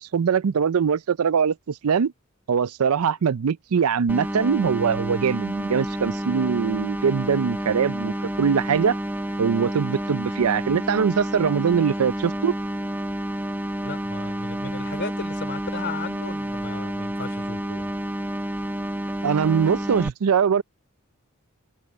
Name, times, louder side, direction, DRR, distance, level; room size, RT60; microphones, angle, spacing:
voice 1, 0.0-2.1 2.5-9.0 9.4-12.5 19.2-20.6, right 6 dB, 85° right, 0.5 m, -22 dB
sound 1, 4.1-20.1, right 1 dB, 10° right, 1.1 m, -29 dB
voice 2, 13.8-17.9, left 3 dB, 55° left, 3.9 m, -35 dB
open air
head